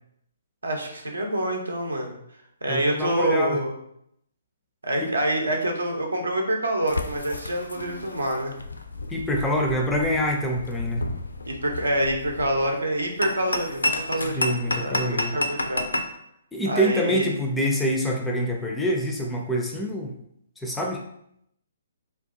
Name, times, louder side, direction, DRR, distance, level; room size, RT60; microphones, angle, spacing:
voice 1, 0.6-2.1 2.6-3.7 4.8-8.5 11.5-15.9 16.7-17.3, right 1 dB, 75° right, 2 dB, 0.7 m, -26 dB
voice 2, 2.7-3.6 5.0-5.1 9.1-11.1 14.4-15.3 16.5-20.1 20.6-21.0, equal, 5° left, 0 dB, 0.4 m, -26 dB
sound 1, 6.9-16.1, left 2 dB, 80° left, 0.4 m, -31 dB
2.7 x 2.3 x 3.6 m, 0.74 s
figure-of-eight pair, 130°, 0 cm